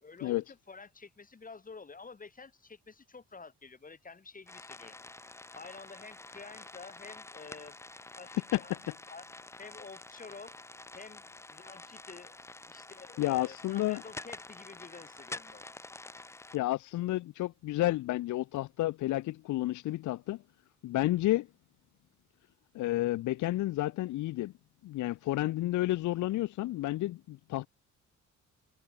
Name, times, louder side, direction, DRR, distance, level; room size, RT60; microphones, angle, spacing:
voice 1, 0.0-5.0 5.5-7.8 8.2-8.7 9.1-9.3 9.6-10.6 10.9-12.4 12.7-15.7, left 4 dB, 25° left, 2.2 m, -49 dB
sound 1, 4.5-16.6, left 2 dB, 10° left, 0.6 m, -48 dB
voice 2, 13.2-14.0 16.5-20.4 20.8-21.5 22.7-24.5 24.8-27.7, left 16 dB, 75° left, 0.6 m, -31 dB
cardioid pair, 90°, 30 cm